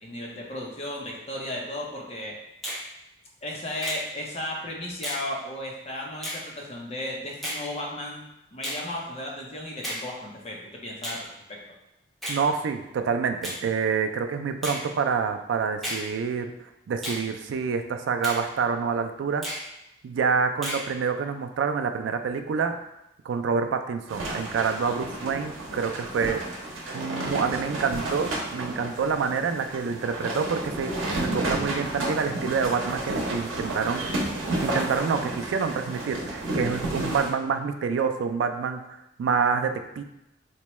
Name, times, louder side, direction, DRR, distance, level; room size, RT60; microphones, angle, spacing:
voice 1, 0.0-2.4 3.4-8.2 8.5-11.2 11.5-11.6, left 1 dB, 35° left, -2 dB, 0.7 m, -35 dB
Finger snapping, 2.6-2.9 3.8-4.0 5.0-5.3 6.2-6.4 7.4-7.6 8.6-8.8 9.8-10.1 11.0-11.2 12.2-12.4 13.4-13.6 14.6-14.8 15.8-16.1 17.0-17.2 18.2-18.4 19.4-19.7 20.6-20.9, equal, ahead, 0.8 m, -33 dB
voice 2, 12.3-16.5 16.9-19.5 20.0-22.8 23.2-26.4 26.9-34.2 34.6-40.0, right 5 dB, 75° right, 7 dB, 0.3 m, -27 dB
sound 1, 24.1-37.3, right 1 dB, 90° right, 0.7 m, -31 dB
4.3 x 2.2 x 3.0 m, 0.87 s
head